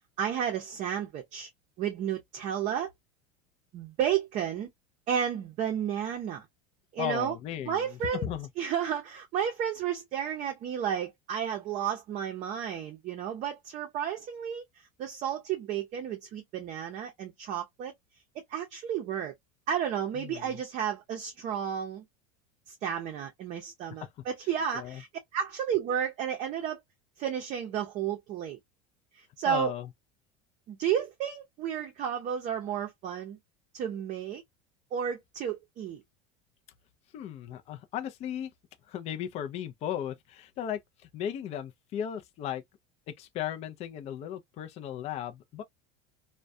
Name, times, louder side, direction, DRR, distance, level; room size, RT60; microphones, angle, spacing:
voice 1, 0.2-1.5 1.8-2.9 3.7-4.7 5.1-6.4 6.9-7.3 7.7-8.3 8.6-14.6 15.0-17.9 18.4-19.3 19.7-22.0 22.7-25.1 25.3-26.8 27.2-28.6 29.1-29.7 30.7-33.4 33.7-34.4 34.9-36.0, right 9 dB, 40° right, 0.6 m, -32 dB
voice 2, 7.0-8.5 20.1-20.6 24.0-24.1 24.7-25.0 29.5-29.9 37.1-38.5 38.9-40.8 41.1-42.6 43.1-45.6, left 10 dB, 35° left, 0.4 m, -36 dB
2.2 x 2.1 x 2.5 m
supercardioid pair, 135°, 18 cm